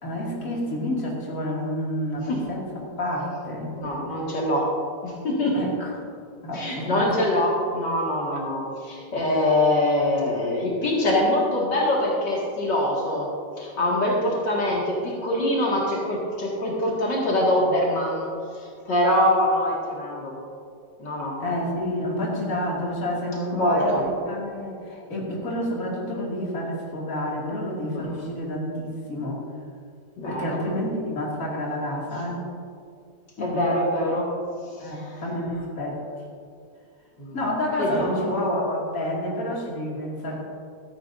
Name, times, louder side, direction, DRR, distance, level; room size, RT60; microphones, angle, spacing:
voice 1, 0.0-3.7 5.5-5.9 6.4-7.0 8.3-8.4 21.4-29.4 30.3-32.5 33.4-33.6 34.8-36.0 37.3-40.4, left 1 dB, 50° left, -5 dB, 2.9 m, -29 dB
voice 2, 3.8-4.7 5.0-5.6 6.5-13.3 13.6-20.4 21.0-21.4 23.5-24.0 28.0-28.1 30.2-30.6 33.4-34.3 34.7-35.2 37.2-37.4 37.8-38.3, left 1 dB, 80° left, -4 dB, 2.8 m, -24 dB
16.0 x 13.5 x 2.7 m, 2.3 s
omnidirectional pair, 1.9 m